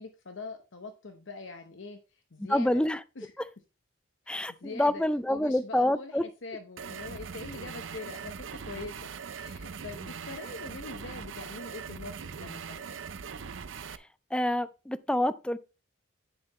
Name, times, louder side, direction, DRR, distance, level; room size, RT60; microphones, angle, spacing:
voice 1, 0.0-2.7 3.2-3.3 4.3-5.0 5.3-13.1, left 3 dB, 65° left, 0.9 m, -43 dB
voice 2, 2.5-3.0 3.4-3.5 4.3-6.2 13.9-15.6, left 1 dB, 5° left, 0.3 m, -27 dB
sound 1, 6.8-14.0, right 6 dB, 65° right, 0.6 m, -41 dB
9.5 x 7.2 x 3.0 m
head